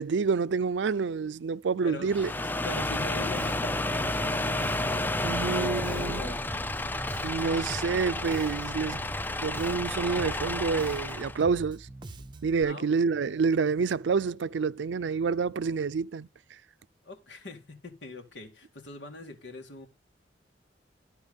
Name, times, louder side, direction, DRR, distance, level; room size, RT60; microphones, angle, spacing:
voice 1, 0.0-2.3 5.2-6.2 7.2-9.0 9.4-11.9 12.4-16.3, right 5 dB, 80° right, 0.4 m, -28 dB
voice 2, 1.8-2.1 2.6-6.4 12.6-12.9 17.0-19.9, left 2 dB, 85° left, 2.2 m, -42 dB
sound 1, 2.1-11.4, left 2 dB, 10° left, 0.4 m, -31 dB
Bass guitar, 2.7-12.6, right 2 dB, 25° right, 0.7 m, -44 dB
12.5 x 4.5 x 5.2 m
head